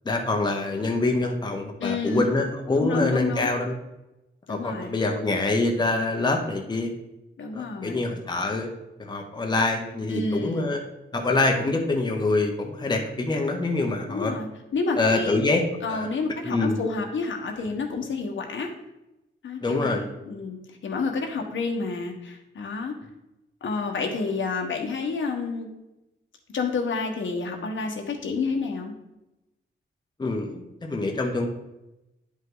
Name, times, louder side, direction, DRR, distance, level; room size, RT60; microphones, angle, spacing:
voice 1, 0.0-3.8 4.5-6.9 7.5-8.7 9.0-10.8 11.1-14.3 15.0-15.6 15.9-16.1 16.4-16.8 19.6-20.1 30.2-31.5, left 2 dB, 20° left, 2 dB, 0.9 m, -25 dB
voice 2, 1.8-2.3 2.7-3.5 4.5-5.0 7.4-8.0 10.1-10.7 14.1-15.4 15.8-18.7 19.4-22.9 23.6-25.7 26.5-28.9, left 4 dB, 85° left, 2 dB, 1.4 m, -29 dB
10.5 x 5.5 x 3.9 m, 0.94 s
wide cardioid pair, 180°, 19 cm